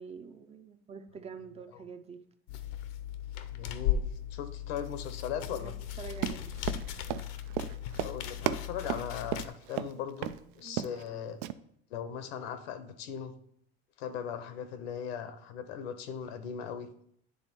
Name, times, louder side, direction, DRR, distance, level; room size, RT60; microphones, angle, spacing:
voice 1, 0.0-2.2 5.5-6.6 10.6-10.8, right 5 dB, 20° right, 7 dB, 0.5 m, -46 dB
sound 1, 2.5-9.5, left 10 dB, 70° left, 0.7 m, -37 dB
voice 2, 3.5-4.0 4.3-5.8 7.9-11.4 11.9-13.3 14.0-16.9, left 8 dB, 85° left, 11 dB, 1.0 m, -39 dB
Run, 6.1-9.9 10.2-10.4 10.7-11.1 11.4-11.5, right 12 dB, 85° right, 0.5 m, -34 dB
9.4 x 3.6 x 4.4 m, 0.67 s
supercardioid pair, 140°, 30 cm